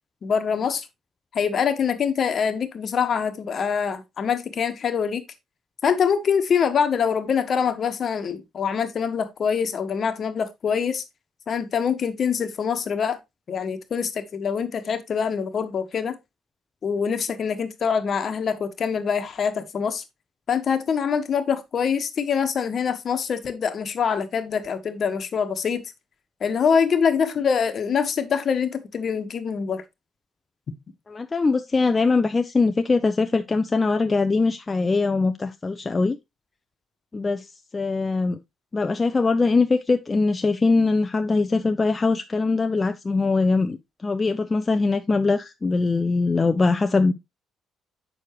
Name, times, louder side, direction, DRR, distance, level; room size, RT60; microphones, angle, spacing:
voice 1, 0.2-0.9 1.3-5.2 5.8-11.0 11.5-13.2 13.5-16.2 16.8-20.0 20.5-25.9 26.4-29.8, left 6 dB, 55° left, 1.3 m, -24 dB
voice 2, 31.1-36.2 37.1-37.5 37.7-38.4 38.7-47.1, left 3 dB, 30° left, 0.6 m, -22 dB
7.6 x 6.6 x 3.1 m
hypercardioid pair, 55°, 0 cm